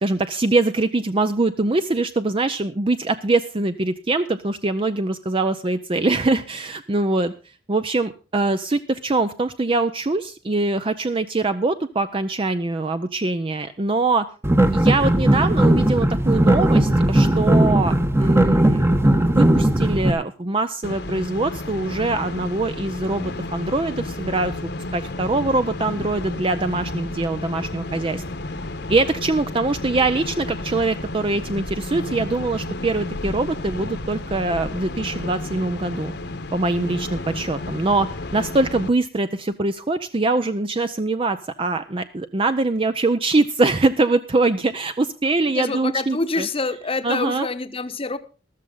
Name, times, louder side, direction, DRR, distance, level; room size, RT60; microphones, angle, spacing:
voice 1, 0.0-7.3 7.7-14.3 14.7-18.8 19.2-28.2 28.9-36.1 36.5-46.5 47.0-47.5, right 2 dB, 30° right, 10 dB, 0.6 m, -23 dB
sound 1, 14.4-20.1, right 1 dB, 15° right, 1.0 m, -17 dB
sound 2, 20.8-38.9, left 2 dB, 65° left, 1.2 m, -32 dB
voice 2, 45.5-48.2, left 3 dB, 30° left, 11 dB, 1.0 m, -26 dB
14.0 x 13.0 x 3.8 m, 0.34 s
head